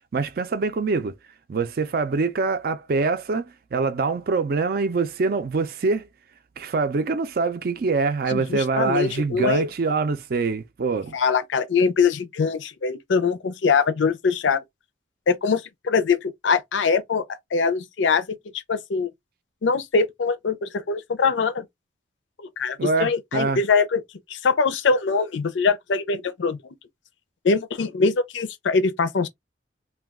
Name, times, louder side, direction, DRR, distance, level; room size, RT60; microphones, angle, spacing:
voice 1, 0.1-1.1 1.5-6.1 6.6-11.2 22.8-23.6, right 4 dB, 55° right, 0.4 m, -24 dB
voice 2, 8.3-9.7 11.1-14.6 15.3-17.2 17.5-18.3 18.5-19.1 19.6-21.6 22.4-24.0 24.3-26.6 27.4-29.3, left 5 dB, 80° left, 0.5 m, -23 dB
2.3 x 2.2 x 3.5 m
head